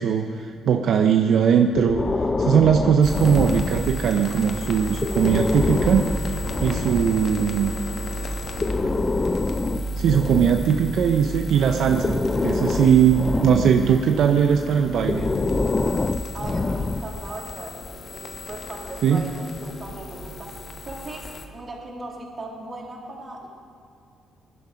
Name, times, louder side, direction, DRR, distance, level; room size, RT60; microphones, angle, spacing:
voice 1, 0.0-2.0 2.4-7.8 10.0-12.2 12.4-15.3 19.0-19.3, right 7 dB, 70° right, 5 dB, 0.7 m, -20 dB
Breathing, 1.7-4.2 4.9-7.3 8.4-11.2 11.8-14.0 15.0-17.3, left 3 dB, 25° left, 0.6 m, -26 dB
sound 1, 3.0-21.4, right 1 dB, 50° left, 1.3 m, -33 dB
voice 2, 16.3-23.5, right 2 dB, 35° right, -2 dB, 3.3 m, -38 dB
20.0 x 11.0 x 5.2 m, 2.4 s
cardioid pair, 90°, 0 cm